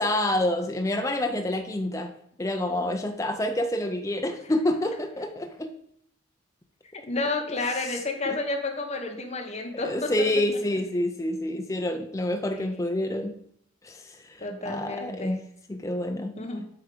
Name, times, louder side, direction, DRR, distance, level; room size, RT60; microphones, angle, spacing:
voice 1, 0.0-2.1 2.4-5.7 8.3-8.4 9.8-13.3 13.8-15.4 15.7-16.3, left 1 dB, 15° left, 5 dB, 0.4 m, -28 dB
voice 2, 7.1-10.3 12.5-13.0 14.4-15.4 16.4-16.6, left 2 dB, 30° left, 2 dB, 1.0 m, -31 dB
8.0 x 3.6 x 5.1 m, 0.67 s
head